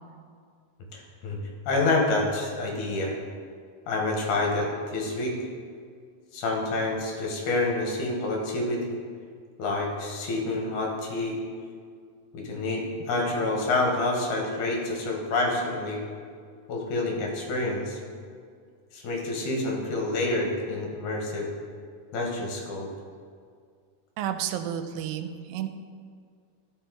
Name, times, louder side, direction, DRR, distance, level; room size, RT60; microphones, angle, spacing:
voice 1, 0.9-1.4 1.7-3.2 3.9-5.4 6.3-8.8 9.6-11.4 12.3-16.0 16.7-18.0 18.9-21.5 22.1-22.9, left 2 dB, 65° left, 0 dB, 2.3 m, -28 dB
voice 2, 24.2-25.7, right 10 dB, 85° right, 9 dB, 2.3 m, -31 dB
12.0 x 5.2 x 3.7 m, 2.1 s
omnidirectional pair, 4.1 m